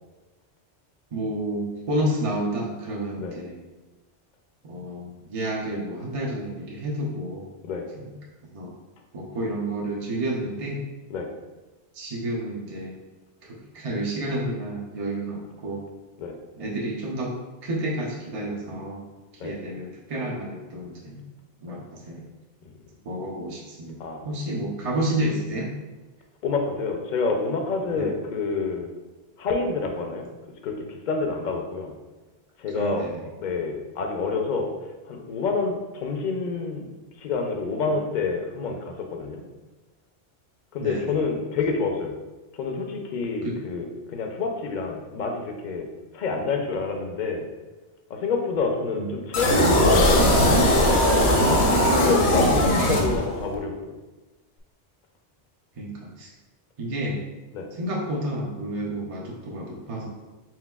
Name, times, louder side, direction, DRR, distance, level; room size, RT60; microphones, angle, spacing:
voice 1, 1.1-3.6 4.6-7.5 7.9-8.1 8.5-8.7 9.1-10.8 11.9-13.0 13.4-15.8 16.6-17.3 17.6-19.1 19.4-21.2 21.6-22.3 23.1-24.0 24.2-25.7 27.9-28.1 32.7-33.2 37.9-38.0 40.8-41.2 43.4-43.5 48.9-49.1 52.8-53.2 55.8-56.3 56.8-57.2 57.7-60.1, right 1 dB, 40° right, -3 dB, 0.5 m, -30 dB
voice 2, 26.4-28.9 29.4-30.3 30.6-31.9 32.6-33.1 33.4-34.7 35.1-36.9 37.2-39.4 40.7-42.1 42.5-45.9 46.1-47.5 48.1-50.7 52.0-53.7 57.5-57.7, left 4 dB, 55° left, 3 dB, 0.6 m, -28 dB
sound 1, 49.3-53.6, left 1 dB, 75° left, 1.0 m, -19 dB
4.5 x 3.6 x 2.3 m, 1.2 s
omnidirectional pair, 1.1 m